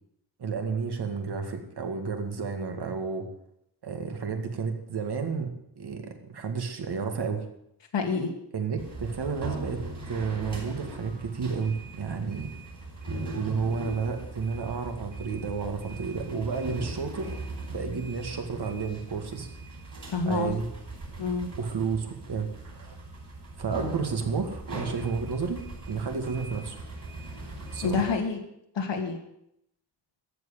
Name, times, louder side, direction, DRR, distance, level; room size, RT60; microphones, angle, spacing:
voice 1, 0.4-3.3 3.8-5.5 5.8-7.4 8.5-9.8 10.1-12.5 13.3-17.4 17.7-19.5 20.2-20.7 21.5-23.0 23.6-26.8 27.7-28.1, right 5 dB, 65° right, 5 dB, 2.1 m, -31 dB
voice 2, 7.9-8.3 20.1-20.5 21.2-21.5 27.8-28.4 28.7-29.2, left 4 dB, 90° left, 3 dB, 2.5 m, -27 dB
sound 1, 8.8-28.2, right 2 dB, 45° right, 4.7 m, -40 dB
13.5 x 7.8 x 8.8 m, 0.77 s
wide cardioid pair, 170°, 42 cm